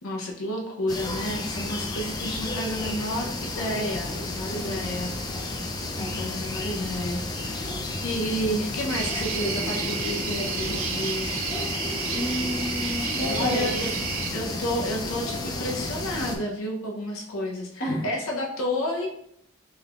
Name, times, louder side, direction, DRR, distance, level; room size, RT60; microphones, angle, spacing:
voice 1, 0.0-5.1 6.0-7.6 8.0-11.4 13.2-13.9 14.3-19.1, left 1 dB, 90° left, 0 dB, 0.6 m, -31 dB
sound 1, 0.9-16.4, left 2 dB, 20° left, 0.3 m, -32 dB
sound 2, 8.9-14.3, right 7 dB, 85° right, 0.4 m, -32 dB
voice 2, 12.1-13.7 17.8-18.0, left 1 dB, 45° left, -3 dB, 1.0 m, -30 dB
3.5 x 3.4 x 2.2 m, 0.75 s
head